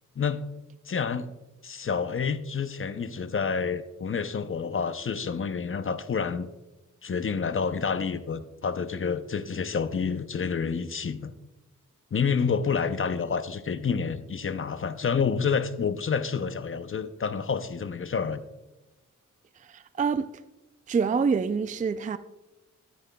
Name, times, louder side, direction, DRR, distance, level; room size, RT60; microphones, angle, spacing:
voice 1, 0.9-1.3 1.6-6.5 7.0-11.3 12.1-18.4, left 6 dB, 40° left, 0.6 m, -28 dB
voice 2, 19.6-20.3 20.9-22.2, right 5 dB, 25° right, 0.3 m, -26 dB
12.5 x 9.4 x 2.2 m
cardioid pair, 60°, 32 cm